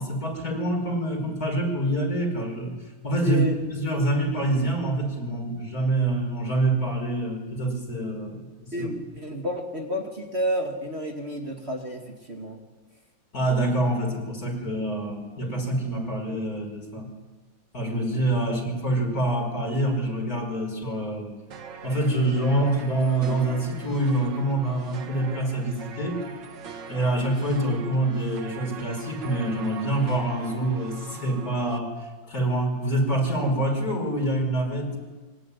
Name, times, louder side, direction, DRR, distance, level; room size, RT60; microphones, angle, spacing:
voice 1, 0.0-2.7 3.0-8.9 13.3-17.1 17.7-21.3 21.8-26.2 26.9-31.9 32.3-35.0, right 1 dB, 45° left, 2 dB, 6.0 m, -26 dB
voice 2, 3.2-3.5 8.7-12.6 18.5-18.6, equal, 35° right, 3 dB, 2.5 m, -30 dB
sound 1, 21.5-31.8, right 6 dB, 70° right, 2.3 m, -42 dB
25.0 x 24.0 x 10.0 m, 1.3 s
omnidirectional pair, 2.1 m